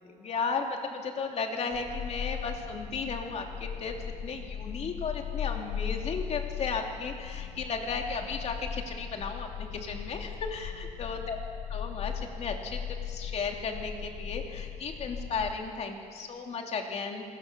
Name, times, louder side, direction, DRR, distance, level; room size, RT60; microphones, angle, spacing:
voice 1, 0.0-3.9 4.2-11.4 11.7-12.8 13.1-17.2, left 5 dB, 45° left, 3 dB, 2.8 m, -35 dB
sound 1, 1.7-15.5, left 8 dB, 65° left, 3.1 m, -38 dB
28.0 x 19.0 x 6.9 m, 2.4 s
cardioid pair, 135°, 15 cm